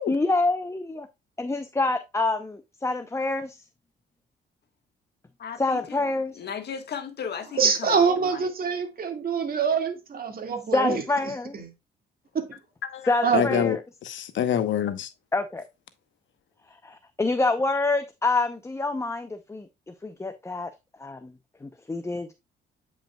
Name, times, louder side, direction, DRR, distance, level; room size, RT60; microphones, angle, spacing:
voice 1, 0.1-1.1 1.4-3.6 5.6-6.4 10.7-11.6 13.1-13.8 15.3-15.7 16.8-19.7 20.0-20.7 21.0-21.3 21.6-22.3, left 3 dB, 15° left, 0.6 m, -26 dB
voice 2, 5.4-6.0 6.3-8.5, left 7 dB, 55° left, 1.4 m, -35 dB
voice 3, 7.6-11.0 11.5-11.7 12.3-12.5 13.2-13.7, right 6 dB, 50° right, 1.9 m, -25 dB
voice 4, 12.9-13.8 14.0-15.1, left 9 dB, 70° left, 0.9 m, -26 dB
8.7 x 5.3 x 2.2 m
cardioid pair, 90°, 20 cm